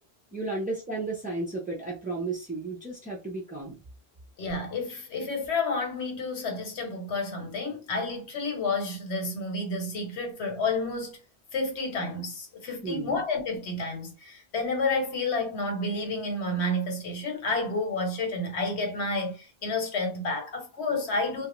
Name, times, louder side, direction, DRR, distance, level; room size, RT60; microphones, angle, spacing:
voice 1, 0.3-3.8 12.8-13.2, right 3 dB, 15° right, 0.3 m, -33 dB
voice 2, 4.4-11.2 11.5-21.5, left 2 dB, 85° left, 1.1 m, -30 dB
2.3 x 2.1 x 2.9 m
omnidirectional pair, 1.1 m